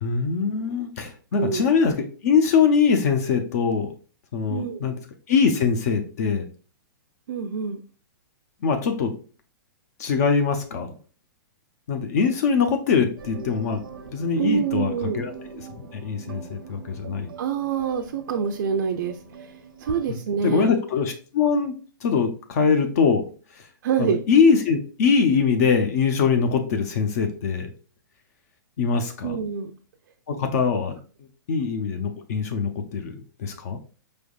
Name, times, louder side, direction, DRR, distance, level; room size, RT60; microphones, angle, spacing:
voice 1, 0.0-3.9 4.3-4.9 5.3-6.4 8.6-9.1 10.0-11.0 11.9-13.8 14.1-15.3 15.9-17.3 20.1-20.2 20.4-21.7 22.0-23.2 24.0-27.7 28.8-29.4 30.3-30.9 31.5-33.8, left 5 dB, 45° left, 6 dB, 0.6 m, -22 dB
voice 2, 1.3-1.7 4.5-4.9 7.3-7.8 14.4-15.2 17.4-19.5 19.8-20.7 23.8-24.2 29.2-29.7, right 6 dB, 60° right, 3 dB, 0.5 m, -26 dB
sound 1, 13.2-20.2, right 6 dB, 90° right, 0.8 m, -42 dB
5.1 x 3.4 x 2.3 m, 0.39 s
hypercardioid pair, 160°, 11 cm